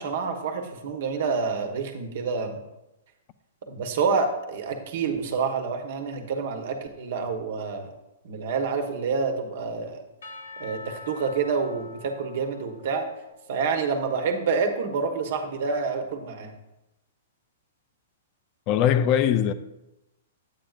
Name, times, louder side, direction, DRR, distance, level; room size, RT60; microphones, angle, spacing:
voice 1, 0.0-2.6 3.7-7.9 8.2-10.0 10.6-13.0 13.5-16.5, right 5 dB, 60° right, 1.2 m, -28 dB
Percussion / Church bell, 10.2-14.2, left 3 dB, 80° left, 1.1 m, -45 dB
voice 2, 18.7-19.5, left 9 dB, 35° left, 0.5 m, -21 dB
9.0 x 8.5 x 2.5 m
hypercardioid pair, 145°, 0 cm